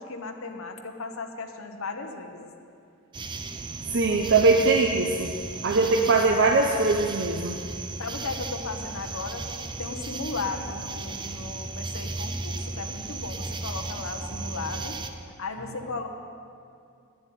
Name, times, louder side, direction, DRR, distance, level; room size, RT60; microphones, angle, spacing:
voice 1, 0.0-2.5 8.0-15.0 15.4-16.1, left 3 dB, 65° left, 4 dB, 1.0 m, -36 dB
sound 1, 3.1-15.1, right 3 dB, 20° right, 0.5 m, -35 dB
voice 2, 3.9-5.3 5.6-7.6, right 3 dB, 55° right, 2 dB, 0.7 m, -21 dB
10.0 x 7.4 x 9.3 m, 2.5 s
head